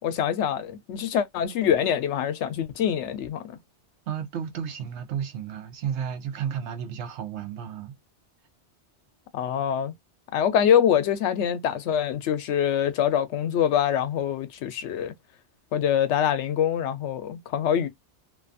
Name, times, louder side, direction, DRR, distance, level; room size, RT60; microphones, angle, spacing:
voice 1, 0.0-3.6 9.3-9.9 10.3-15.1 15.7-17.9, left 9 dB, 85° left, 0.9 m, -24 dB
voice 2, 4.1-7.9, right 8 dB, 80° right, 1.0 m, -32 dB
2.6 x 2.3 x 2.5 m
omnidirectional pair, 1.1 m